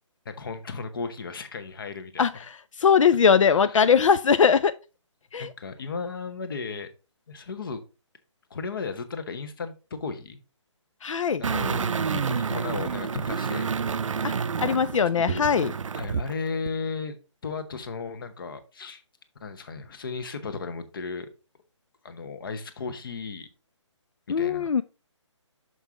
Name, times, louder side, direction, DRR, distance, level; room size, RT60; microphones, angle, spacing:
voice 1, 0.2-2.5 3.5-3.9 5.4-6.9 7.3-7.8 8.5-10.4 11.4-13.7 14.6-14.8 15.2-17.2 17.4-19.0 19.4-21.3 22.0-23.5 24.3-24.7, left 4 dB, 45° left, 0.9 m, -35 dB
voice 2, 2.2-4.7 5.3-5.5 11.0-11.4 14.2-14.3 14.6-15.7 24.3-24.8, left 6 dB, 85° left, 0.4 m, -21 dB
sound 1, 11.4-16.3 16.7-16.8, right 6 dB, 85° right, 0.5 m, -29 dB
6.3 x 5.4 x 3.5 m
hypercardioid pair, 165°, 16 cm